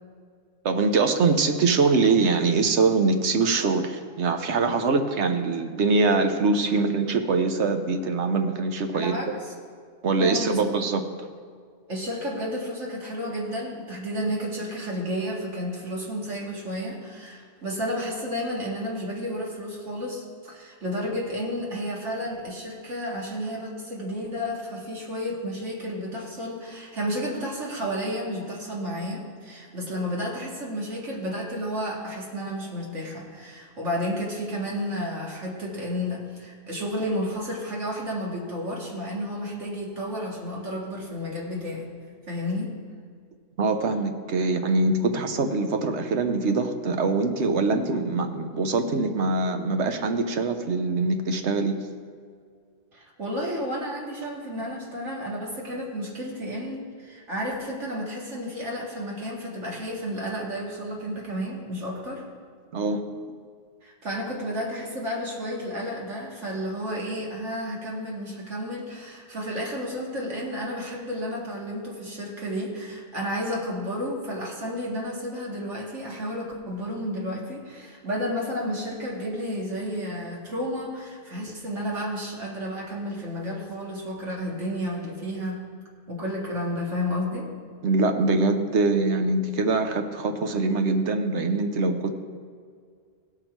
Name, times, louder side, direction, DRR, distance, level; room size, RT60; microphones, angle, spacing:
voice 1, 0.6-9.2 10.0-11.0 43.6-51.9 62.7-63.0 87.8-92.1, right 3 dB, 70° right, 6 dB, 1.1 m, -23 dB
voice 2, 8.9-9.3 10.2-10.7 11.9-41.9 42.3-42.7 52.9-62.2 63.8-85.6 86.1-87.5, equal, 90° right, -3 dB, 2.4 m, -31 dB
16.5 x 5.9 x 4.6 m, 2.1 s
omnidirectional pair, 1.2 m